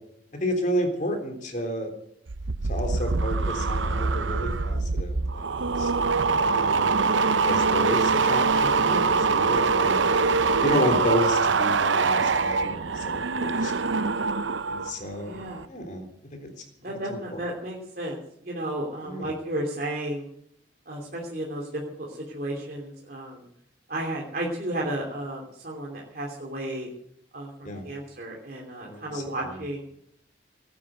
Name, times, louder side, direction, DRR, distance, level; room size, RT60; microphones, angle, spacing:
voice 1, 0.3-1.9 2.7-5.4 5.8-5.9 6.5-7.1 7.4-10.1 10.6-13.1 13.4-13.8 14.6-15.4 15.7-16.1 16.3-16.5 17.3-17.4 19.0-19.3 27.6-27.8 28.8-29.2, equal, 40° left, 4 dB, 3.5 m, -30 dB
sound 1, 2.3-14.9 15.2-15.7, right 4 dB, 85° right, 0.7 m, -24 dB
voice 2, 15.2-15.6 16.8-20.2 20.9-23.5 23.9-26.9 27.3-29.8, right 1 dB, 50° right, -1 dB, 2.9 m, -33 dB
18.5 x 9.9 x 7.8 m, 0.71 s
head